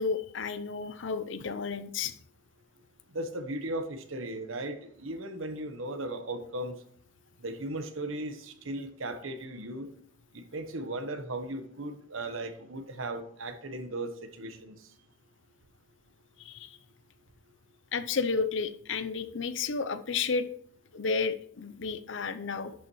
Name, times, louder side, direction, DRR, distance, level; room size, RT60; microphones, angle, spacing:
voice 1, 0.0-2.1 16.4-16.8 17.9-20.5 20.9-22.7, left 5 dB, 65° left, 12 dB, 0.6 m, -32 dB
voice 2, 3.1-6.8 7.4-9.9 10.3-14.7, right 1 dB, 85° right, 8 dB, 1.1 m, -37 dB
11.0 x 6.9 x 3.1 m, 0.62 s
head